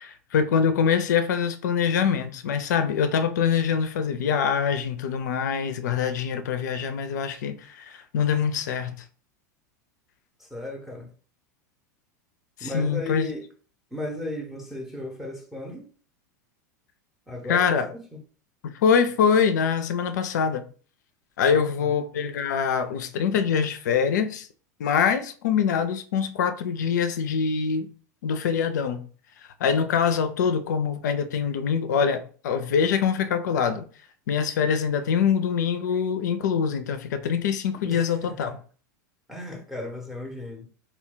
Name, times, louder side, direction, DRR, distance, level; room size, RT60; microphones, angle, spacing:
voice 1, 0.0-9.0 12.6-13.3 17.5-17.9 18.6-20.6 21.4-24.5 24.8-27.9 28.2-29.0 29.6-33.8 34.3-38.5, left 7 dB, 75° left, 0.4 m, -24 dB
voice 2, 10.4-11.1 12.6-13.5 13.9-15.9 17.3-18.2 21.5-21.9 37.8-38.6 39.3-40.7, left 2 dB, 5° right, 0.7 m, -35 dB
2.2 x 2.2 x 3.8 m
hypercardioid pair, 95°, 10 cm